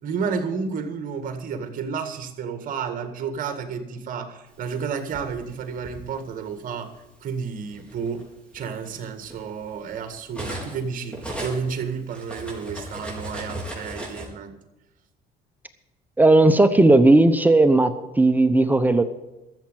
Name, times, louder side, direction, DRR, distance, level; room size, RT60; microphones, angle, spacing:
voice 1, 0.0-6.9 7.2-8.3 8.5-14.6, right 6 dB, 55° right, 8 dB, 2.0 m, -31 dB
Cutlery silverware, 4.7-6.0 7.0-7.2 7.6-10.8 11.1-14.3, right 1 dB, 5° left, 4.3 m, -36 dB
voice 2, 16.2-19.0, right 2 dB, 10° right, 9 dB, 0.9 m, -16 dB
13.5 x 7.3 x 9.1 m, 0.98 s
cardioid pair, 110°, 17 cm